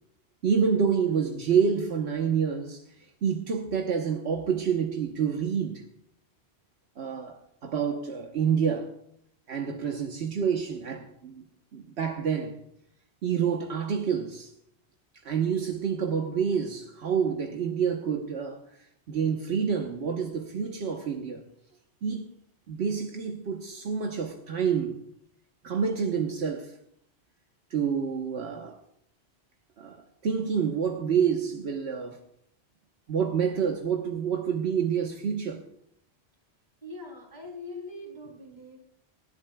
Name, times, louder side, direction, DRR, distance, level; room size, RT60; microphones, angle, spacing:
voice 1, 0.4-5.8 7.0-8.9 9.5-11.5 11.7-12.6 13.2-14.5 15.2-18.6 19.1-21.4 22.0-22.2 22.7-25.0 25.6-26.7 27.7-28.8 29.8-32.2 33.1-35.7, right 7 dB, 80° right, 1.3 m, -28 dB
voice 2, 36.8-38.8, left 2 dB, 40° right, 3.5 m, -42 dB
25.5 x 11.0 x 2.3 m
omnidirectional pair, 1.1 m